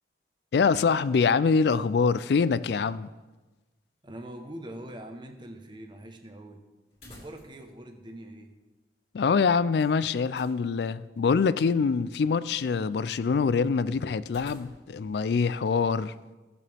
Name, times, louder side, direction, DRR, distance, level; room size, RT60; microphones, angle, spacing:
voice 1, 0.5-3.1 9.1-16.1, left 5 dB, 70° left, 0.4 m, -24 dB
sound 1, 1.6-2.5 2.8-2.9 6.9-7.7 8.0-8.1 9.7-10.6 14.2-15.1, left 1 dB, 35° left, 3.1 m, -52 dB
voice 2, 4.0-6.6 7.1-8.5, right 1 dB, 25° right, 0.9 m, -43 dB
17.0 x 7.0 x 3.4 m
head